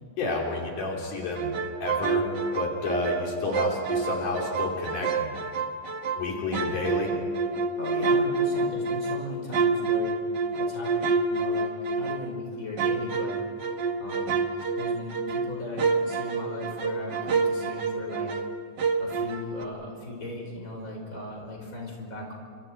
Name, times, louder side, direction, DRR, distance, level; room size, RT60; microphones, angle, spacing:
voice 1, 0.2-1.5 1.8-2.3 2.5-5.3 6.2-7.1, left 2 dB, 80° left, -1 dB, 4.7 m, -30 dB
sound 1, 1.4-3.2 3.5-6.2 6.5-12.4 12.8-18.5 18.8-19.6, right 4 dB, 65° right, 1.1 m, -28 dB
voice 2, 7.7-10.2 10.6-13.4 14.0-14.4 14.8-18.3 19.0-22.3, left 1 dB, 25° left, 0 dB, 5.6 m, -38 dB
30.0 x 28.0 x 4.7 m, 2.2 s
omnidirectional pair, 3.6 m